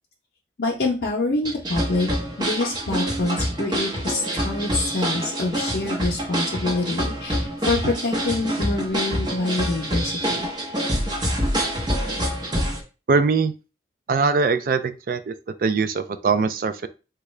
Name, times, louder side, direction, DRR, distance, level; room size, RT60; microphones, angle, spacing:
voice 1, 0.6-2.1 2.4-10.5, left 2 dB, 70° left, -3 dB, 0.6 m, -26 dB
sound 1, 1.4-12.8, equal, 25° right, 0.8 m, -26 dB
voice 2, 13.1-13.5 14.1-15.3 15.6-16.9, right 4 dB, 50° right, 11 dB, 0.3 m, -21 dB
3.6 x 2.2 x 3.1 m, 0.32 s
head